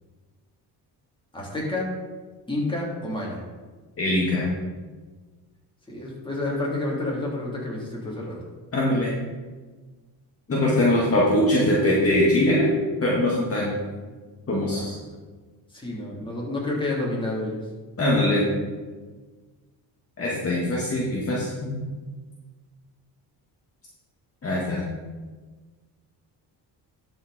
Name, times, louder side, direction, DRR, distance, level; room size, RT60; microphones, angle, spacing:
voice 1, 1.3-1.9 2.5-3.4 5.9-8.3 14.6-14.9 15.7-17.6, left 2 dB, 10° left, -4 dB, 3.2 m, -29 dB
voice 2, 4.0-4.5 8.7-9.1 10.5-12.7 13.0-13.8 14.5-15.0 18.0-18.5 20.2-21.9 24.4-24.8, left 1 dB, 35° left, -4 dB, 1.9 m, -22 dB
12.5 x 5.9 x 4.2 m, 1.4 s
cardioid pair, 110°, 42 cm